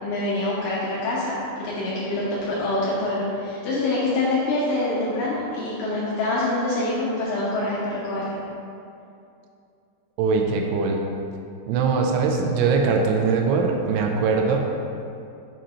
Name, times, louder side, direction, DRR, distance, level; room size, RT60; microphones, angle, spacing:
voice 1, 0.0-8.3, left 2 dB, 75° left, -8 dB, 3.0 m, -25 dB
voice 2, 10.2-11.0 11.7-14.6, right 4 dB, 85° right, 2 dB, 2.8 m, -21 dB
7.6 x 2.6 x 5.5 m, 2.5 s
omnidirectional pair, 5.3 m